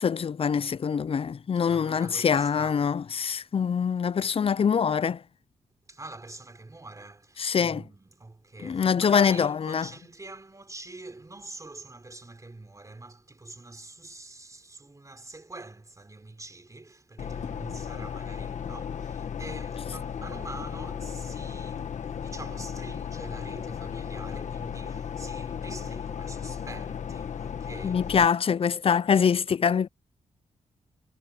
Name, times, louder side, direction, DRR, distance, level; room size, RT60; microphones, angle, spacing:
voice 1, 0.0-5.2 7.4-7.8 8.6-9.9 27.8-29.9, left 7 dB, 50° left, 0.5 m, -24 dB
voice 2, 1.6-2.9 5.9-28.2, right 2 dB, 25° right, 3.8 m, -45 dB
sound 1, 17.2-28.3, left 7 dB, 70° left, 1.5 m, -35 dB
cardioid pair, 70°, 13 cm